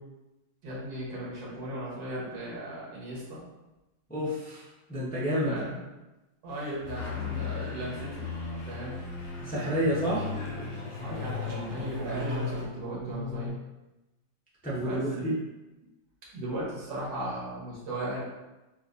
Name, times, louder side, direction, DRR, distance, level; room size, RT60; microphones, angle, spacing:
voice 1, 0.6-3.4 5.4-5.8 6.4-8.3 8.7-9.0 11.0-13.5 14.9-15.3 16.3-18.2, right 1 dB, 85° right, -5 dB, 1.9 m, -36 dB
voice 2, 4.1-5.6 9.4-10.3 14.6-15.3, equal, 10° left, -8 dB, 0.5 m, -29 dB
sound 1, 6.5-6.7 7.2-7.3 8.5-12.6, right 1 dB, 65° right, 1.4 m, -42 dB
sound 2, 6.8-12.7, left 1 dB, 65° left, 0.7 m, -49 dB
sound 3, 6.8-13.5, left 5 dB, 50° right, 0.7 m, -37 dB
5.5 x 2.6 x 2.6 m, 1.0 s
omnidirectional pair, 2.0 m